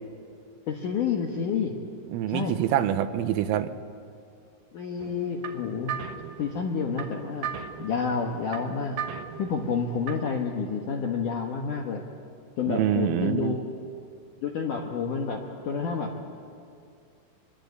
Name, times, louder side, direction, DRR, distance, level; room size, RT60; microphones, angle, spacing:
voice 1, 0.7-1.8 2.3-2.6 4.7-6.0 6.4-7.5 7.8-9.0 9.4-12.0 12.6-13.6 14.4-16.1, left 5 dB, 75° left, 1 dB, 1.9 m, -29 dB
voice 2, 2.1-3.7 12.7-13.6, right 11 dB, 85° right, 10 dB, 3.5 m, -26 dB
sound 1, 5.0-10.4, right 8 dB, 70° right, 2.5 m, -38 dB
25.0 x 22.0 x 8.0 m, 2.4 s
omnidirectional pair, 5.7 m